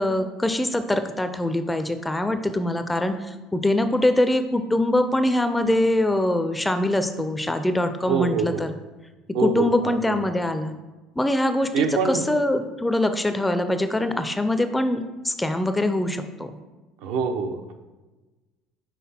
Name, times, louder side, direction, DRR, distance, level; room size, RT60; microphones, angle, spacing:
voice 1, 0.0-8.7 9.4-10.7 11.2-16.5, left 1 dB, 10° left, 9 dB, 0.4 m, -23 dB
voice 2, 8.1-8.6 9.3-10.2 11.7-12.2 17.0-17.7, right 5 dB, 80° right, 6 dB, 0.6 m, -25 dB
5.7 x 3.9 x 4.2 m, 1.2 s
cardioid pair, 130°, 0 cm